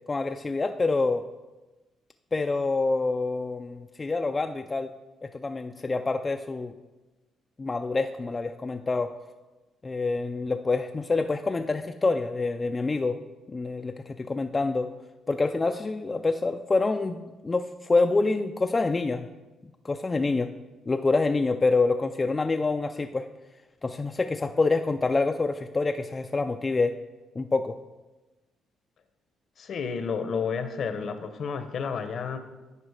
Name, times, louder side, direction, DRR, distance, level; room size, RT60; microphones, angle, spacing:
voice 1, 0.1-1.2 2.3-4.9 5.2-6.7 7.6-9.1 9.8-13.2 13.5-14.9 15.3-19.3 19.8-20.5 20.9-23.3 23.8-27.0 27.4-27.8, left 3 dB, 25° left, 6 dB, 0.3 m, -26 dB
voice 2, 29.6-32.4, left 6 dB, 55° left, 9 dB, 0.8 m, -31 dB
9.6 x 5.0 x 4.8 m, 1.1 s
cardioid pair, 100°, 0 cm